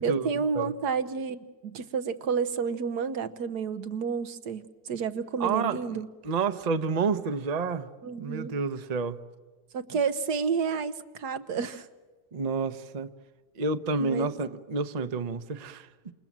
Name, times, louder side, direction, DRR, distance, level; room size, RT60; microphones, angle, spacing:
voice 1, 0.0-6.1 8.0-8.5 9.7-11.9 14.0-14.3, right 6 dB, 85° right, 1.7 m, -30 dB
voice 2, 5.4-7.9 8.2-9.2 12.3-13.1 13.5-16.1, right 4 dB, 35° right, 0.8 m, -29 dB
28.5 x 27.5 x 7.4 m
omnidirectional pair, 1.7 m